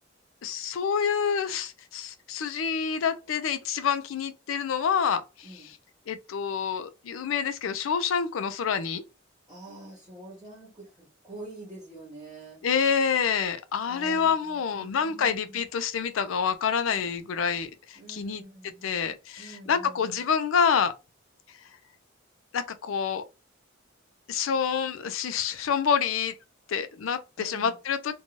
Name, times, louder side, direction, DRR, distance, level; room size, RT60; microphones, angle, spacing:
voice 1, 0.4-5.7 6.1-9.0 12.6-18.4 18.8-20.9 22.5-23.2 24.3-26.3 26.7-28.1, left 7 dB, 85° left, 0.4 m, -27 dB
voice 2, 9.5-12.6 13.9-15.6 18.0-18.9 19.4-20.2 27.4-27.7, right 2 dB, 20° right, 0.9 m, -46 dB
2.6 x 2.2 x 2.9 m
head